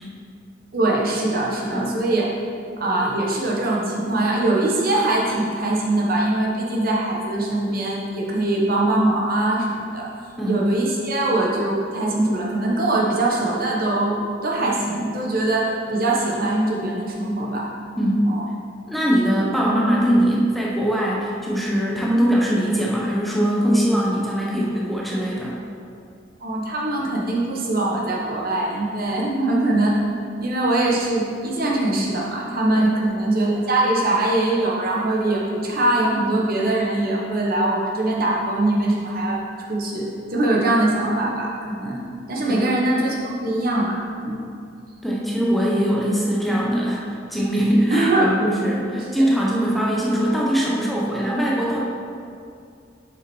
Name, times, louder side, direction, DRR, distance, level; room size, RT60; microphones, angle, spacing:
voice 1, 0.7-2.3 2.8-10.1 10.5-14.2 14.4-17.7 18.3-18.4 26.4-30.0 30.4-39.4 39.7-43.2 43.4-44.4 47.9-48.3 48.9-49.0, right 2 dB, 55° right, -3 dB, 1.3 m, -22 dB
voice 2, 18.0-18.3 18.9-25.6 32.7-33.0 42.4-42.7 45.0-51.8, equal, ahead, -5 dB, 0.9 m, -21 dB
6.8 x 5.8 x 4.5 m, 2.4 s
head